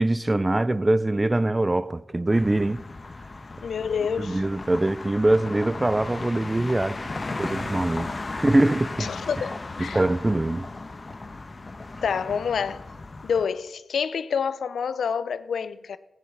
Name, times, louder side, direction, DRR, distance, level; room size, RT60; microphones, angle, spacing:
voice 1, 0.0-2.8 4.2-7.0 7.4-9.1 9.8-10.7, right 2 dB, 25° right, 0.4 m, -23 dB
sound 1, 2.3-13.4, left 3 dB, 40° left, 1.0 m, -36 dB
voice 2, 3.6-4.4 9.0-10.0 12.0-12.8 13.2-16.0, left 6 dB, 90° left, 0.4 m, -28 dB
15.0 x 9.6 x 4.5 m
cardioid pair, 60°, 0 cm